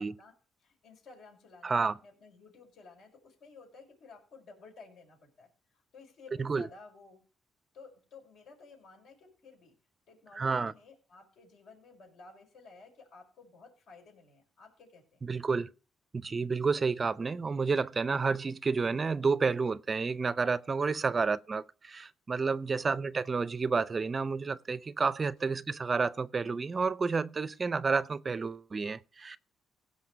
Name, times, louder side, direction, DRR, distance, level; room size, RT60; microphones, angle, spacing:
voice 1, 0.0-7.2 7.7-9.7 10.1-15.2 21.1-21.3 22.7-23.0 25.4-25.6, left 4 dB, 75° left, 5.5 m, -55 dB
voice 2, 1.6-1.9 6.4-6.7 10.4-10.7 15.2-15.7 16.1-29.4, right 4 dB, 35° right, 0.5 m, -30 dB
16.5 x 5.6 x 6.2 m
cardioid pair, 90°, 0 cm